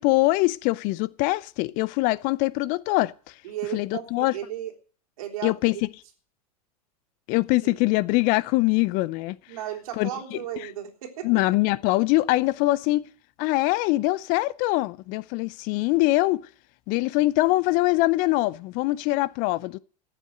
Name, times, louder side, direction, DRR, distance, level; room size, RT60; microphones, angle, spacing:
voice 1, 0.0-3.3 3.7-4.3 5.4-5.7 7.3-9.4 10.0-10.7 11.2-13.0 13.4-16.4 16.9-19.8, left 19 dB, 45° left, 0.6 m, -23 dB
voice 2, 3.4-4.7 5.2-5.5 7.7-7.8 9.5-11.3, right 11 dB, 65° right, 3.5 m, -34 dB
14.5 x 8.3 x 7.7 m
hypercardioid pair, 90°, 20 cm